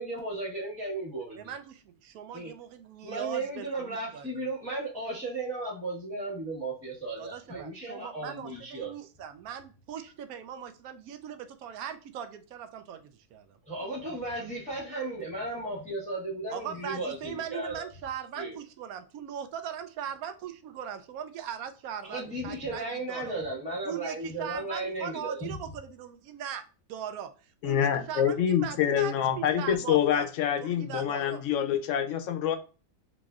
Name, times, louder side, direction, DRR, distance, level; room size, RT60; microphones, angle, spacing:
voice 1, 0.0-1.5 2.3-2.5 3.0-8.9 13.7-17.8 18.4-18.6 22.0-25.5, right 2 dB, 5° left, 1.1 m, -35 dB
voice 2, 1.3-4.5 7.2-13.6 16.5-23.3 23.8-26.6 26.9-30.3 30.6-31.4 31.7-31.8, right 9 dB, 80° right, 1.0 m, -40 dB
voice 3, 27.6-32.6, left 9 dB, 70° left, 0.8 m, -26 dB
4.0 x 3.0 x 2.3 m
omnidirectional pair, 1.6 m